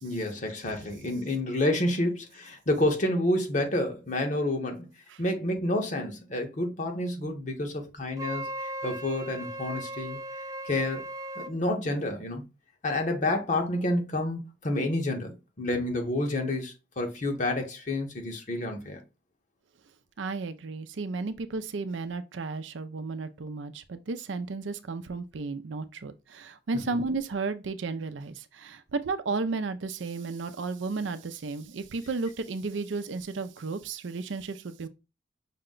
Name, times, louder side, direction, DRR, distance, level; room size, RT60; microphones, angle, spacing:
voice 1, 0.0-4.9 5.2-10.2 10.6-12.4 12.8-19.0 26.9-27.0, left 1 dB, 40° left, 1.0 m, -29 dB
Wind instrument woodwind instrument, 8.2-11.5, right 1 dB, 20° right, 0.3 m, -37 dB
voice 2, 20.2-34.9, right 3 dB, 80° right, 0.5 m, -33 dB
5.8 x 2.2 x 3.7 m
head